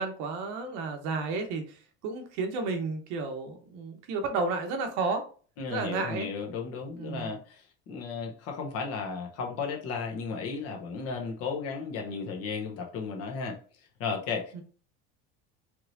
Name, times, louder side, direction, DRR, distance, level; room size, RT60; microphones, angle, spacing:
voice 1, 0.0-1.8 2.0-5.2 5.7-6.3 7.0-7.3 14.5-14.6, right 3 dB, 75° right, 5 dB, 1.1 m, -32 dB
voice 2, 5.6-14.6, left 5 dB, 55° left, 2 dB, 1.0 m, -35 dB
4.7 x 3.1 x 2.7 m, 0.40 s
cardioid pair, 140°, 29 cm